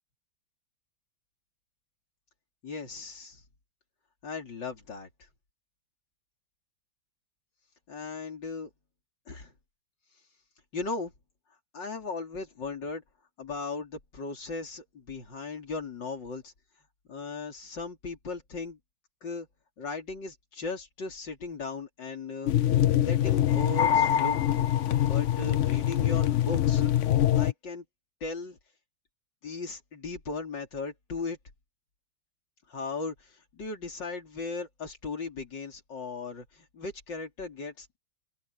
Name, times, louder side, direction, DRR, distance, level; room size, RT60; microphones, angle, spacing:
voice 1, 2.6-3.4 4.2-5.1 7.9-8.7 9.3-9.5 10.7-11.1 11.7-13.0 13.4-16.5 17.1-18.8 19.2-19.5 19.8-24.4 25.0-26.9 27.4-27.8 28.2-28.6 29.4-31.4 32.7-38.0, left 4 dB, 60° left, 4.2 m, -37 dB
sound 1, 22.4-27.5, left 11 dB, 80° left, 0.6 m, -24 dB
open air
omnidirectional pair, 2.2 m